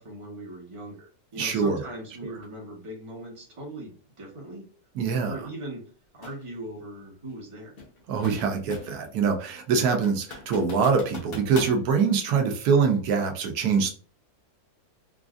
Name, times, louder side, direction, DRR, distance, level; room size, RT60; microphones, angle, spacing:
voice 1, 0.0-4.6 5.2-7.7, right 1 dB, 25° right, -2 dB, 1.0 m, -40 dB
voice 2, 1.4-1.8 4.9-5.4 8.1-13.9, right 5 dB, 85° right, 5 dB, 1.1 m, -24 dB
sound 1, 6.2-6.4 7.8-9.1 9.5-9.6 10.0-11.8, left 3 dB, 45° left, 0.9 m, -41 dB
3.8 x 2.4 x 2.4 m, 0.41 s
omnidirectional pair, 1.6 m